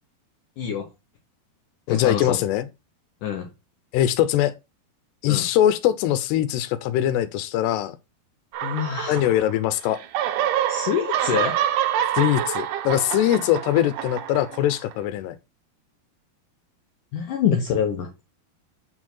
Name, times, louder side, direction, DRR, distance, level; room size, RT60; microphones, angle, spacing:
voice 1, 0.6-0.9 1.9-2.4 3.2-3.5 5.3-5.5 8.6-9.2 10.7-11.6 17.1-18.1, left 8 dB, 70° left, 2.1 m, -25 dB
voice 2, 1.9-2.7 3.9-4.5 5.2-8.0 9.1-10.0 12.2-15.4, left 12 dB, 85° left, 2.9 m, -22 dB
sound 1, 8.5-9.7 9.9-14.9, right 11 dB, 85° right, 1.8 m, -26 dB
9.1 x 4.6 x 4.4 m
omnidirectional pair, 4.7 m